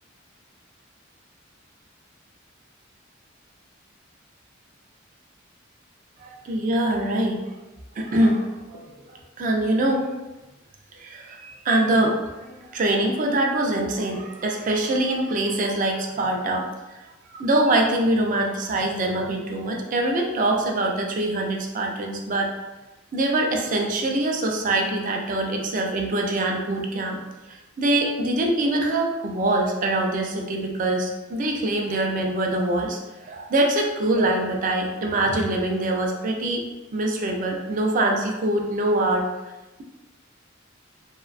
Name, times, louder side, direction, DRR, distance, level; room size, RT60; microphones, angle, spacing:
voice 1, 6.2-7.5 8.0-8.9 9.4-10.1 11.0-17.0 17.3-22.5 23.1-27.2 27.5-36.7 36.9-39.2, right 1 dB, 40° right, 1 dB, 0.3 m, -24 dB
2.5 x 2.1 x 2.4 m, 1.1 s
head